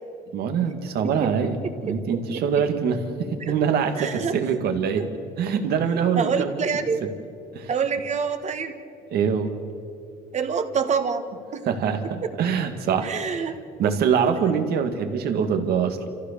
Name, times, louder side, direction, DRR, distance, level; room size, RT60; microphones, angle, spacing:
voice 1, 0.3-1.6 1.8-5.0 5.4-6.6 7.0-7.1 7.5-7.7 9.1-9.5 11.6-13.5 13.8-16.0, right 6 dB, 70° right, 6 dB, 2.1 m, -24 dB
voice 2, 1.0-1.5 2.3-2.4 4.0-4.4 5.0-5.1 6.2-7.0 7.7-8.7 10.3-11.2 11.5-11.6 13.0-14.4, right 6 dB, 45° right, 8 dB, 1.6 m, -27 dB
29.0 x 15.0 x 6.8 m, 2.5 s
cardioid pair, 110°, 17 cm